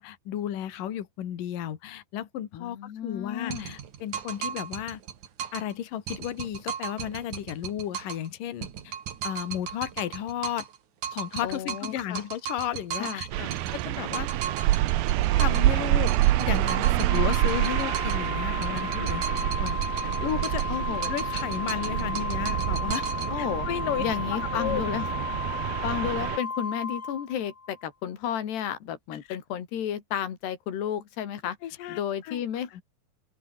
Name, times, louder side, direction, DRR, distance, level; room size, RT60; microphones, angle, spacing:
voice 1, 0.0-5.0 5.5-8.9 9.2-10.7 11.1-13.3 13.7-14.3 15.3-20.6 21.0-23.1 23.4-24.0 24.3-24.8 31.6-32.4 32.7-32.8, left 11 dB, 60° left, 3.4 m, -33 dB
voice 2, 2.5-3.8 11.4-12.2 13.0-13.5 20.7-21.1 23.3-23.7 24.0-25.1 25.8-31.6 31.9-32.7, left 9 dB, 80° left, 4.9 m, -32 dB
sound 1, 3.5-5.7 6.1-8.3 8.6-10.8 11.0-15.7 16.1-18.3 18.6-20.8 21.0-23.3, right 8 dB, 50° right, 3.2 m, -36 dB
sound 2, 13.3-26.4, right 15 dB, 70° right, 2.6 m, -27 dB
Organ, 17.1-27.8, left 4 dB, 40° left, 1.1 m, -34 dB
open air
omnidirectional pair, 4.8 m